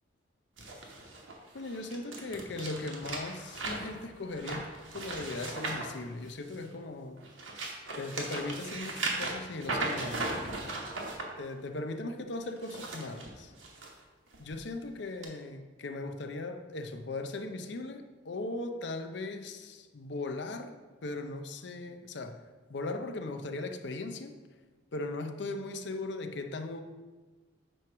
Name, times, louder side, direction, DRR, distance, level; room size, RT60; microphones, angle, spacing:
sound 1, 0.6-6.7 7.2-11.2 12.5-13.9 14.3-14.6 15.2-15.3, right 2 dB, 85° right, 1.3 m, -37 dB
voice 1, 1.5-7.3 8.0-10.5 11.4-13.5 14.4-20.7 21.0-22.4 22.7-24.3 24.9-26.8, left 2 dB, 65° left, 7 dB, 0.6 m, -38 dB
9.1 x 3.1 x 5.9 m, 1.3 s
head